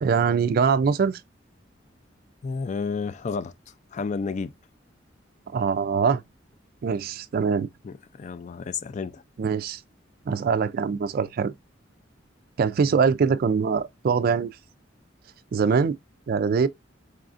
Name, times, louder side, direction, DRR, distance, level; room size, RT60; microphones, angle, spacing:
voice 1, 0.0-1.2 5.5-6.2 6.8-7.7 9.4-9.8 10.3-11.5 12.6-14.5 15.5-16.0 16.3-16.7, right 6 dB, 50° right, 0.3 m, -23 dB
voice 2, 2.4-3.5 3.9-4.5 7.8-9.2, left 5 dB, 40° left, 0.3 m, -31 dB
4.8 x 2.4 x 2.4 m
head